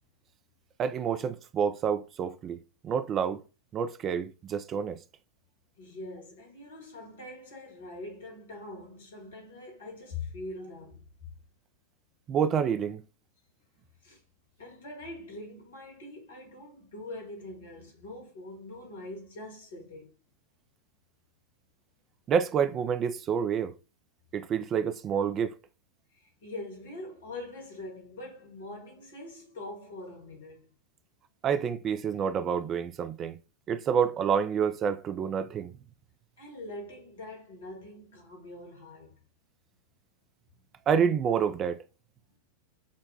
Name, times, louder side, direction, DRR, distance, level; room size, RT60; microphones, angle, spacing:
voice 1, 0.8-3.4 3.7-5.0 12.3-13.0 22.3-23.7 24.3-25.5 31.4-33.4 33.7-35.7 40.9-41.8, right 7 dB, 30° right, 0.3 m, -28 dB
voice 2, 5.8-11.0 14.0-14.2 14.6-20.2 26.1-30.7 36.4-39.2, left 2 dB, 60° left, 1.4 m, -43 dB
6.2 x 2.1 x 2.7 m
figure-of-eight pair, 90°, 0 cm